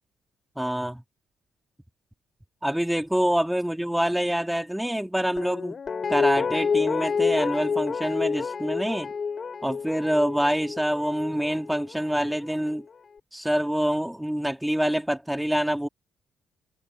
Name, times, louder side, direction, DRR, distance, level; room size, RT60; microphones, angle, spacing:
voice 1, 0.6-1.0 2.6-5.8 6.1-9.1 9.6-12.9 13.3-15.9, equal, 5° right, 3.7 m, -26 dB
Guitar, 5.4-12.4 12.7-12.8, left 5 dB, 40° left, 4.2 m, -28 dB
cardioid pair, 90°, 0 cm